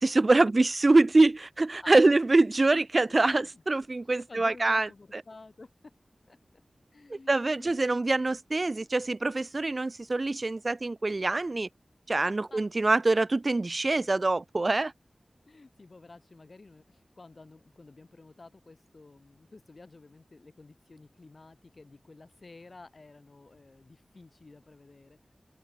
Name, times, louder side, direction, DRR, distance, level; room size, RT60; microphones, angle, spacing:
voice 1, 0.0-4.9 7.3-11.7 12.1-14.9, right 2 dB, 45° right, 0.3 m, -24 dB
voice 2, 3.0-3.6 4.1-5.9 6.3-6.4 6.9-7.9 12.2-12.6 15.5-25.2, left 3 dB, 50° left, 6.2 m, -52 dB
open air
wide cardioid pair, 90°, 0 cm